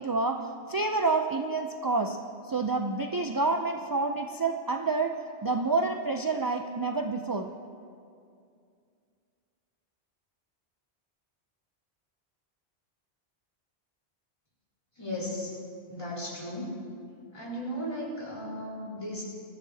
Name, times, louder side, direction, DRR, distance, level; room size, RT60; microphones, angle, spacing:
voice 1, 0.0-2.2 2.4-5.1 5.4-7.5, right 3 dB, 35° right, 4 dB, 0.3 m, -28 dB
voice 2, 15.0-15.5 15.9-16.7 17.3-19.2, equal, 30° left, -6 dB, 4.2 m, -35 dB
23.5 x 14.0 x 2.8 m, 2.4 s
omnidirectional pair, 1.1 m